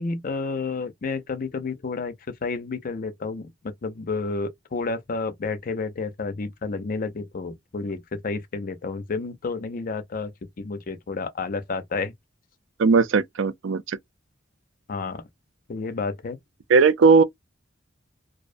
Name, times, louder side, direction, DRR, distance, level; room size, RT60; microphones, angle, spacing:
voice 1, 0.0-2.1 2.4-10.3 10.6-12.1 14.9-15.2 15.7-16.4, left 4 dB, 45° left, 0.5 m, -30 dB
voice 2, 12.8-14.0 16.7-17.2, right 4 dB, 90° right, 0.4 m, -18 dB
2.4 x 2.0 x 2.4 m
head